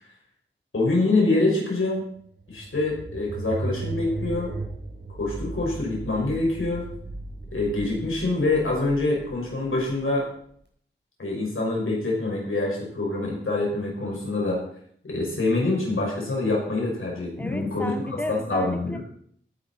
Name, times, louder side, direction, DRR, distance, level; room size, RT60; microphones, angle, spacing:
voice 1, 0.7-2.1 2.5-4.5 5.2-6.8 7.5-10.2 11.2-14.6 15.0-17.9 18.3-19.0, left 2 dB, 85° left, -2 dB, 5.8 m, -25 dB
sound 1, 2.2-10.5, right 3 dB, 55° right, 4.4 m, -36 dB
voice 2, 17.4-19.0, left 1 dB, 5° left, 5 dB, 1.8 m, -33 dB
15.5 x 10.5 x 4.4 m, 0.63 s
wide cardioid pair, 60°, 21 cm